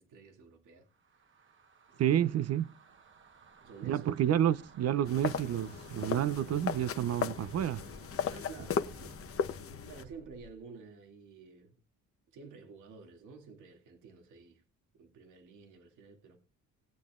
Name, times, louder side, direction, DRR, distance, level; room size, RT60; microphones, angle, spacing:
voice 1, 0.0-1.6 1.9-2.3 3.6-4.1 8.3-9.2 9.8-11.8 12.3-14.6 14.9-16.4, right 5 dB, 80° right, 2.3 m, -52 dB
sound 1, 0.9-10.7, right 4 dB, 40° right, 1.1 m, -55 dB
voice 2, 2.0-2.7 3.8-7.8, right 10 dB, 55° right, 0.5 m, -29 dB
sound 2, 5.1-10.0, left 7 dB, 50° left, 0.9 m, -36 dB
18.5 x 8.7 x 2.4 m
cardioid pair, 90°, 30 cm